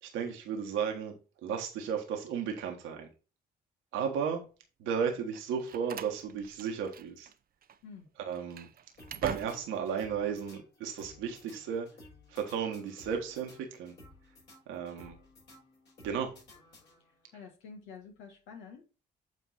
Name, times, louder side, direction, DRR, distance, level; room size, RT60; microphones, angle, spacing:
voice 1, 0.0-1.2 1.4-3.1 3.9-4.4 4.8-7.3 8.2-8.7 9.2-11.9 12.3-13.9 14.7-15.2 16.0-16.3, right 7 dB, 80° right, 1.4 m, -34 dB
Slam, 5.3-7.4 7.6-7.8 8.3-9.9, right 9 dB, 50° right, 0.5 m, -44 dB
sound 1, 9.0-17.3, left 2 dB, 60° left, 4.7 m, -56 dB
voice 2, 17.3-18.8, left 5 dB, 80° left, 1.6 m, -48 dB
8.1 x 4.5 x 4.1 m
hypercardioid pair, 45°, 20 cm